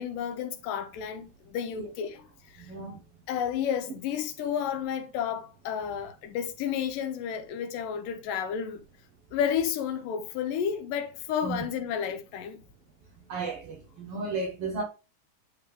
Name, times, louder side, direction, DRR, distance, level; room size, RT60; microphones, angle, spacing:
voice 1, 0.0-2.2 2.5-2.7 3.3-8.9 9.3-12.6, left 8 dB, 85° left, 2.5 m, -31 dB
voice 2, 2.6-3.0 11.4-11.6 13.3-14.8, right 3 dB, 60° right, 1.7 m, -34 dB
10.5 x 3.7 x 3.5 m
omnidirectional pair, 3.8 m